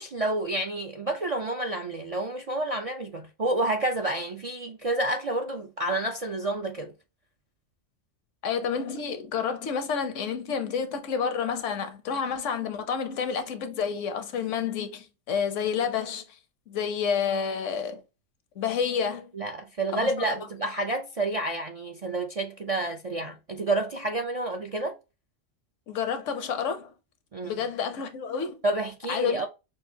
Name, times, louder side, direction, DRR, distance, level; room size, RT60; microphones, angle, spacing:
voice 1, 0.0-6.9 19.3-25.0 27.3-27.6 28.6-29.5, right 2 dB, 50° right, 0.4 m, -29 dB
voice 2, 8.4-16.4 16.7-18.0 18.6-19.3 19.9-20.4 25.9-26.9 27.4-28.6 29.1-29.4, left 6 dB, 75° left, 1.0 m, -29 dB
6.2 x 2.4 x 2.7 m
omnidirectional pair, 1.3 m